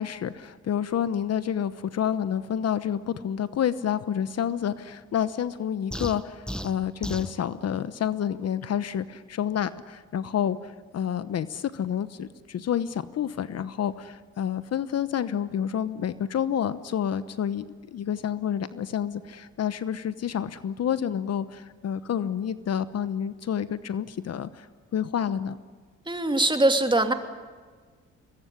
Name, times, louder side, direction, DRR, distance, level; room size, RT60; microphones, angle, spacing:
voice 1, 0.0-17.6 17.9-24.7 24.9-25.6, left 9 dB, 55° left, 14 dB, 1.1 m, -29 dB
sound 1, 5.9-7.4, equal, 5° left, 1.1 m, -34 dB
voice 2, 26.1-27.1, right 2 dB, 15° right, 6 dB, 2.7 m, -22 dB
23.5 x 20.5 x 9.9 m, 1.5 s
cardioid pair, 90°, 30 cm